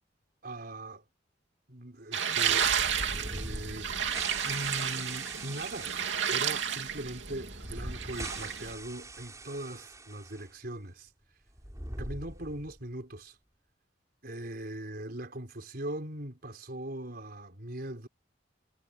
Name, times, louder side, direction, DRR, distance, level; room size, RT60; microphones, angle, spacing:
voice 1, 0.4-1.0 1.7-2.7 3.1-3.9 4.4-6.0 6.3-11.1 12.0-13.4 14.2-18.1, right 1 dB, 55° right, 4.5 m, -40 dB
sound 1, 2.1-8.7, right 8 dB, 75° right, 2.9 m, -32 dB
sound 2, 2.3-10.5 10.8-10.9 11.5-12.9, right 1 dB, 15° right, 5.3 m, -42 dB
head